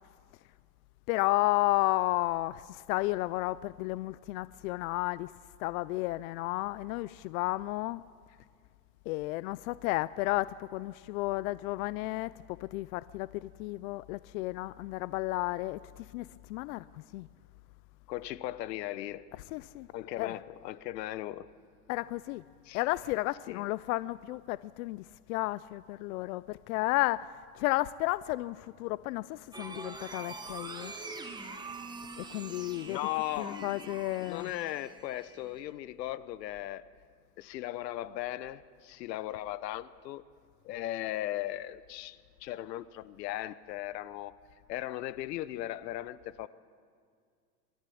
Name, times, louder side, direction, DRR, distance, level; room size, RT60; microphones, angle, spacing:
voice 1, 1.1-5.3 5.6-8.0 9.1-12.3 12.6-17.3 19.5-19.9 20.2-20.3 21.9-22.4 22.7-25.0 25.3-30.9 32.2-33.0 33.4-34.5, left 18 dB, 60° left, 0.5 m, -32 dB
voice 2, 18.1-19.3 19.9-21.5 22.6-22.8 23.5-23.6 32.9-36.9 37.4-40.2 40.6-44.4 44.7-46.5, left 14 dB, 85° left, 1.0 m, -37 dB
sound 1, 29.5-35.7, right 3 dB, 10° right, 1.1 m, -44 dB
24.5 x 13.0 x 8.5 m
supercardioid pair, 145°, 48 cm